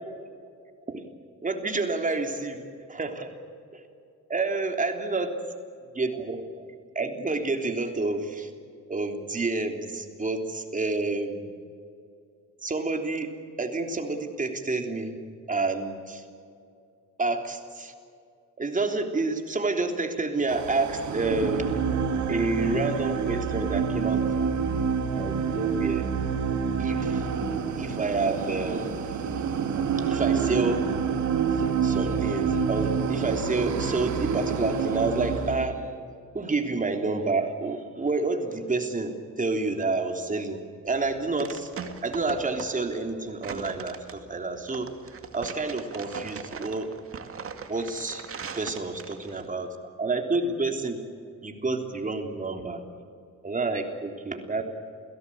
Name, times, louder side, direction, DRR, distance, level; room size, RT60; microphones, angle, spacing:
voice 1, 1.4-2.6 2.9-3.3 3.7-3.8 4.3-5.3 5.9-6.6 6.9-8.5 8.9-11.5 12.6-13.3 13.6-15.2 15.5-16.2 17.2-17.9 18.6-21.7 22.3-24.5 25.2-26.0 26.8-27.2 27.7-29.2 30.1-30.9 31.6-35.9 36.3-41.7 42.0-44.9 45.3-46.9 47.7-48.3 48.5-51.0 51.4-52.8 53.4-54.6, right 3 dB, 25° right, 4 dB, 3.4 m, -29 dB
sound 1, 20.5-35.7, right 6 dB, 70° right, 2.5 m, -27 dB
sound 2, 40.9-49.5, right 6 dB, 45° right, 2.3 m, -40 dB
28.5 x 17.0 x 8.7 m, 2.4 s
cardioid pair, 90°, 30 cm